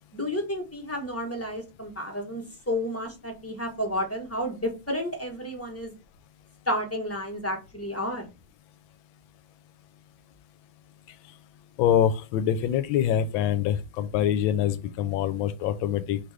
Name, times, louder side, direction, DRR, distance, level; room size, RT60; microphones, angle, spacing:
voice 1, 0.1-5.9 6.7-8.2, equal, 10° left, 0.8 m, -31 dB
voice 2, 11.8-16.2, left 10 dB, 80° left, 1.3 m, -25 dB
6.0 x 2.5 x 3.3 m
omnidirectional pair, 2.2 m